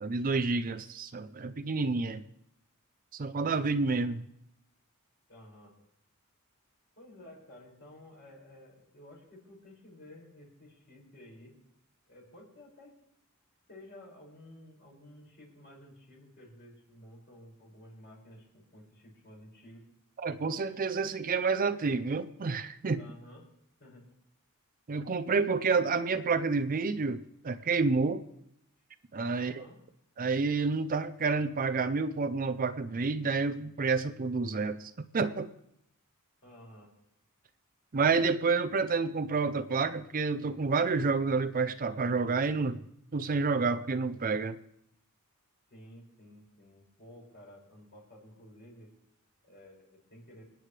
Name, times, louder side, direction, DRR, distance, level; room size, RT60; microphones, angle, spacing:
voice 1, 0.0-2.2 3.1-4.3 20.2-23.0 24.9-28.2 29.1-29.6 30.2-35.5 37.9-42.8 43.1-44.6, right 4 dB, 40° right, 10 dB, 0.5 m, -29 dB
voice 2, 5.3-5.7 7.0-11.5 12.1-12.9 13.7-19.9 23.0-23.4 23.8-24.0 29.4-29.8 36.4-36.9 45.7-48.9 49.4-50.4, left 1 dB, 50° left, -2 dB, 5.8 m, -53 dB
27.0 x 9.2 x 3.3 m, 0.76 s
head